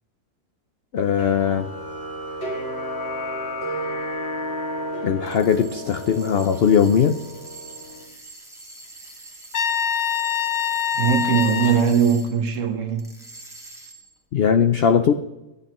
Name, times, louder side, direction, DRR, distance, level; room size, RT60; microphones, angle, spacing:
voice 1, 0.9-1.7 5.0-7.2 14.3-15.1, left 7 dB, 80° left, 0.5 m, -19 dB
sound 1, 1.2-8.0, equal, 40° left, 2.8 m, -32 dB
sound 2, 5.2-12.6 13.0-14.2, right 2 dB, ahead, 2.0 m, -43 dB
Trumpet, 9.5-11.9, left 8 dB, 60° left, 1.3 m, -24 dB
voice 2, 10.9-13.1, right 7 dB, 55° right, 1.4 m, -20 dB
18.5 x 11.5 x 3.1 m
omnidirectional pair, 1.7 m